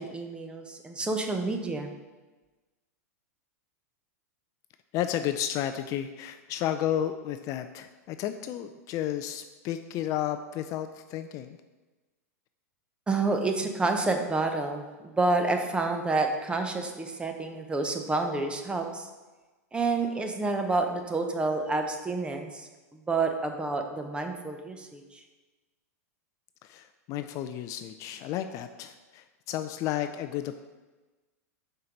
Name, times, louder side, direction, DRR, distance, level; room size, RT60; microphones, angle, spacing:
voice 1, 0.0-1.9 13.1-19.1 19.7-25.2, right 3 dB, 10° right, 4 dB, 0.8 m, -29 dB
voice 2, 4.9-11.6 26.6-30.6, left 11 dB, 40° left, 9 dB, 0.4 m, -32 dB
5.6 x 4.5 x 5.2 m, 1.2 s
hypercardioid pair, 110°, 9 cm